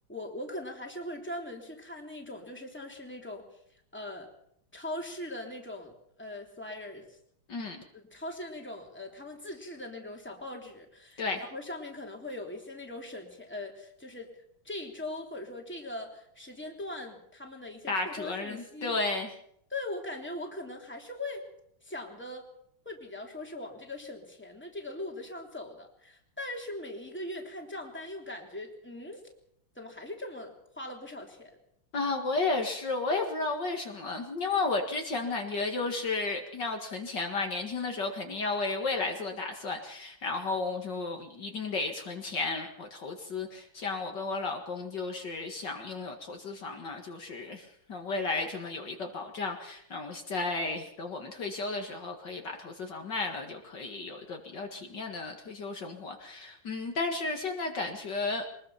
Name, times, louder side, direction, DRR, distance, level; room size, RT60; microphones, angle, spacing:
voice 1, 0.1-3.5 3.9-4.3 4.7-7.2 7.9-14.3 14.6-18.9 19.7-21.5 21.8-22.5 22.8-29.2 29.7-31.6, left 1 dB, 5° left, 1 dB, 3.1 m, -40 dB
voice 2, 7.5-7.8 11.2-11.4 17.9-19.3 31.9-58.4, left 3 dB, 55° left, 3 dB, 2.5 m, -33 dB
23.0 x 20.5 x 5.8 m, 0.69 s
omnidirectional pair, 2.3 m